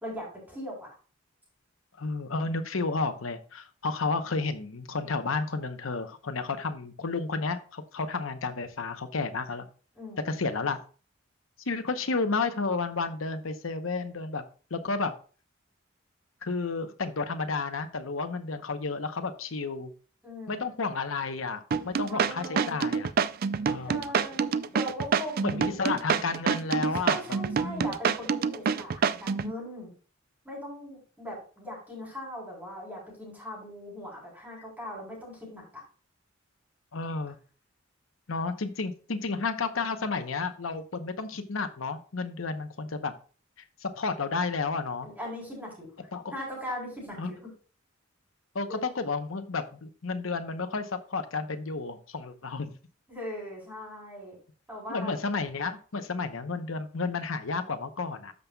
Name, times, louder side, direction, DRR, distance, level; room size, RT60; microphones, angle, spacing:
voice 1, 0.0-0.9 9.9-10.4 20.2-20.8 22.1-22.8 23.8-24.5 24.7-25.8 27.0-29.9 30.4-35.8 45.0-45.9 46.3-47.4 48.7-48.8 53.1-54.4 54.7-55.2, equal, 10° right, -3 dB, 3.7 m, -40 dB
voice 2, 2.0-9.7 10.2-10.8 11.7-14.4 14.7-15.1 16.4-19.9 20.5-23.1 23.7-24.1 25.4-27.2 27.6-27.9 36.9-37.4 38.3-43.1 43.8-45.1 46.1-46.2 47.2-47.3 48.5-52.7 54.9-58.3, left 4 dB, 80° left, 9 dB, 0.9 m, -31 dB
sound 1, 21.7-29.5, right 6 dB, 45° right, 0.3 m, -26 dB
13.0 x 5.4 x 2.3 m, 0.38 s
head